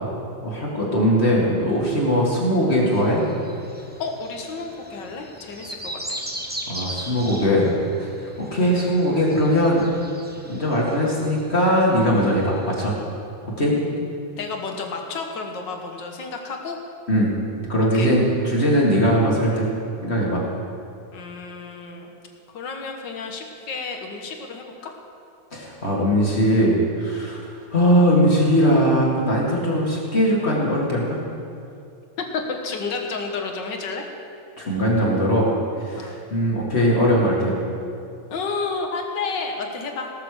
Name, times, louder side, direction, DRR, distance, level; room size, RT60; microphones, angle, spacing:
voice 1, 0.4-3.2 6.7-7.7 8.0-8.1 8.4-9.9 10.5-12.9 13.4-13.8 17.1-17.3 17.7-19.7 20.0-20.4 25.5-31.2 34.6-35.5 35.8-37.6, equal, 30° left, -3 dB, 2.3 m, -20 dB
sound 1, 2.9-12.8, right 1 dB, 10° right, 0.6 m, -38 dB
voice 2, 4.0-6.2 14.4-16.8 17.9-18.1 21.1-22.1 22.5-25.0 32.3-34.1 36.0-36.2 38.3-40.1, left 4 dB, 65° left, 3 dB, 1.9 m, -31 dB
17.5 x 6.8 x 6.6 m, 2.5 s
omnidirectional pair, 2.2 m